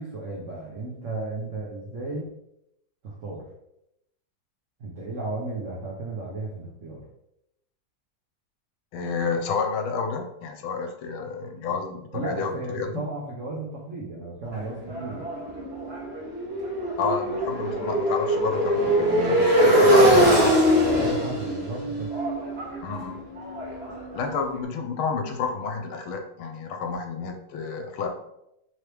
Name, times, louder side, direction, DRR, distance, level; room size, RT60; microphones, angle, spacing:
voice 1, 0.0-2.3 3.0-3.4 4.8-7.0 12.1-15.3 20.1-20.5 21.0-22.1, right 2 dB, 80° right, -3 dB, 0.7 m, -34 dB
voice 2, 8.9-12.9 17.0-20.3 22.8-23.2 24.1-28.1, left 5 dB, 80° left, 4 dB, 1.4 m, -30 dB
Motorcycle, 14.5-24.4, equal, 40° right, 1.0 m, -22 dB
3.8 x 3.0 x 3.2 m, 0.82 s
omnidirectional pair, 2.3 m